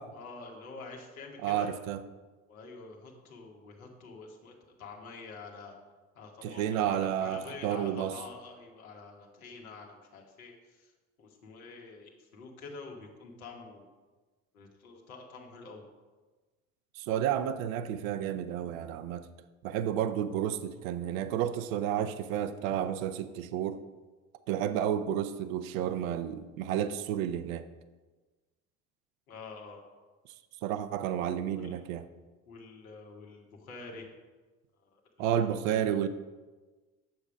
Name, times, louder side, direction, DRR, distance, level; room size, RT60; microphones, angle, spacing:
voice 1, 0.1-1.7 2.5-5.7 6.2-10.9 11.2-13.9 14.5-15.8 29.3-29.8 31.5-31.7 32.5-34.1 34.8-35.4 35.7-35.9, left 4 dB, 85° left, 1.6 m, -47 dB
voice 2, 1.4-2.0 6.4-8.2 17.0-19.3 19.6-23.8 24.5-27.7 30.6-32.0 35.2-36.1, right 10 dB, 70° right, 0.7 m, -31 dB
8.8 x 7.2 x 5.0 m
hypercardioid pair, 70°, 42 cm